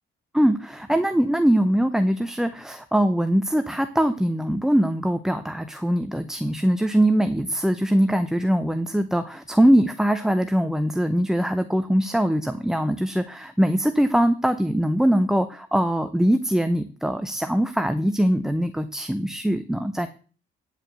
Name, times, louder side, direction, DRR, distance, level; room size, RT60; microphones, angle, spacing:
voice 1, 0.3-20.1, equal, ahead, 9 dB, 0.6 m, -22 dB
9.7 x 4.9 x 6.7 m, 0.39 s
cardioid pair, 90°, 20 cm